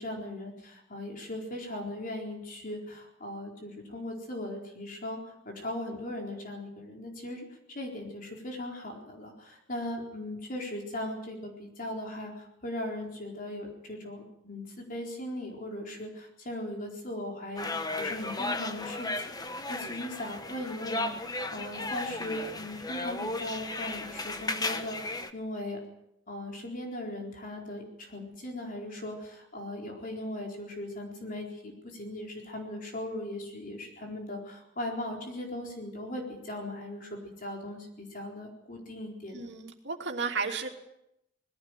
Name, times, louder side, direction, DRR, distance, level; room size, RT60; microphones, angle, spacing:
voice 1, 0.0-7.5 7.7-17.7 18.0-25.8 26.3-39.5, left 1 dB, 45° left, 1 dB, 4.3 m, -38 dB
sound 1, 17.6-25.3, left 2 dB, 20° left, 1.3 m, -35 dB
voice 2, 39.3-40.7, right 4 dB, 65° right, 3 dB, 2.9 m, -33 dB
21.5 x 16.5 x 9.2 m, 0.83 s
head